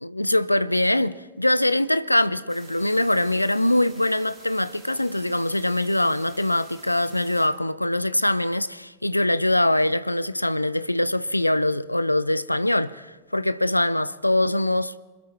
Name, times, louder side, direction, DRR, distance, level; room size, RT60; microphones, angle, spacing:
voice 1, 0.0-15.0, left 1 dB, 85° left, 0.3 m, -23 dB
sound 1, 2.5-7.5, right 2 dB, 15° right, 3.4 m, -50 dB
25.0 x 12.5 x 3.1 m
figure-of-eight pair, 90°, 0 cm